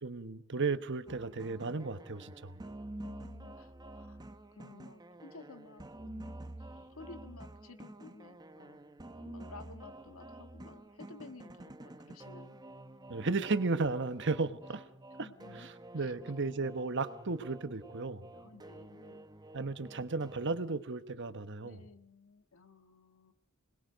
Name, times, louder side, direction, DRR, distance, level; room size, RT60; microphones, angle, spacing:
voice 1, 0.0-2.6 13.1-14.9 15.2-15.3 15.6-18.3 19.5-21.8, right 3 dB, 55° right, 12 dB, 1.2 m, -34 dB
sound 1, 1.1-20.6, right 1 dB, 20° right, 0.9 m, -49 dB
voice 2, 3.0-4.2 4.5-8.8 9.2-12.6 15.2-15.7 15.9-16.1 18.3-19.3 21.6-23.3, left 3 dB, 75° left, 8 dB, 1.7 m, -54 dB
25.5 x 21.0 x 5.2 m, 0.69 s
head